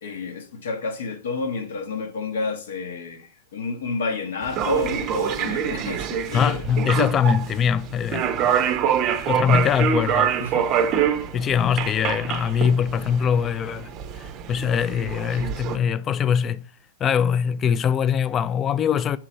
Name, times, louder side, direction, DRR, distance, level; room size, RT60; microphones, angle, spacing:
voice 1, 0.0-6.6 10.4-10.7, left 3 dB, 65° left, 0.9 m, -30 dB
sound 1, 4.4-15.8, right 8 dB, 35° right, 0.6 m, -26 dB
voice 2, 6.3-8.5 9.0-10.4 11.3-13.9 14.2-16.7 17.0-19.2, left 8 dB, 25° left, 0.3 m, -22 dB
4.9 x 4.5 x 4.8 m
figure-of-eight pair, 95°, 0 cm